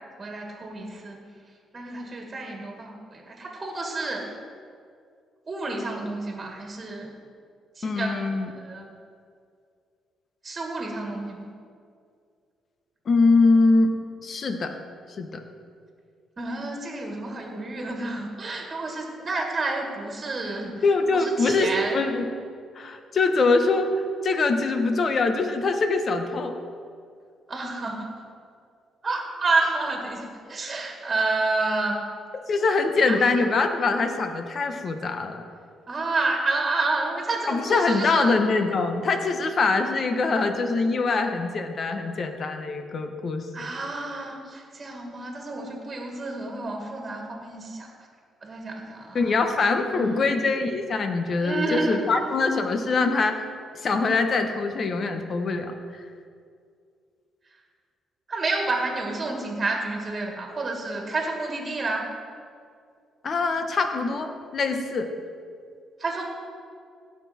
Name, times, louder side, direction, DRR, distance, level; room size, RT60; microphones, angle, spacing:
voice 1, 0.2-1.2 1.7-4.2 5.5-7.1 7.8-8.8 10.4-11.5 16.4-20.8 21.1-22.0 27.5-28.1 29.0-32.0 33.1-33.2 35.9-38.3 43.5-47.9 48.4-49.3 49.9-50.4 51.4-52.1 58.3-62.1 66.0-66.2, right 3 dB, 30° right, 1 dB, 1.9 m, -29 dB
voice 2, 7.8-8.5 13.1-13.9 14.2-14.7 15.2-15.4 19.4-19.5 20.8-22.3 22.8-23.9 24.2-26.5 32.5-35.4 37.5-43.5 49.1-53.4 53.8-56.0 63.2-65.1, left 3 dB, 50° left, 6 dB, 1.1 m, -23 dB
16.5 x 6.1 x 4.4 m, 2.2 s
cardioid pair, 90°, 0 cm